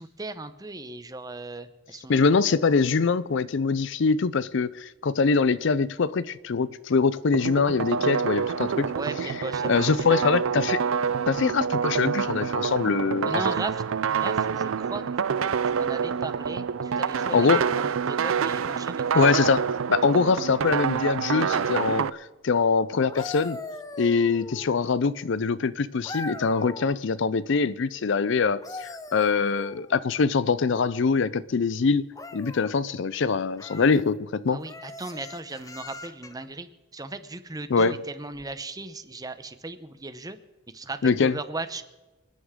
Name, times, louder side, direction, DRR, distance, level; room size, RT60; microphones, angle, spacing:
voice 1, 0.0-2.3 8.9-10.5 13.2-13.7 14.1-15.0 15.6-19.3 34.5-40.4 40.7-41.8, right 2 dB, 20° right, 0.8 m, -37 dB
voice 2, 2.1-8.9 9.7-10.8 11.3-13.4 17.3-17.6 19.1-19.6 19.9-23.6 24.0-32.0 32.3-34.6 37.7-38.0 41.0-41.4, left 5 dB, 60° left, 0.5 m, -23 dB
sound 1, 7.3-22.1, right 6 dB, 80° right, 0.5 m, -27 dB
sound 2, 22.9-24.9 26.0-27.0 28.4-30.0 32.1-32.7 33.6-34.0 34.7-36.5 38.3-38.5, left 2 dB, 15° left, 0.8 m, -40 dB
28.5 x 9.9 x 3.7 m
head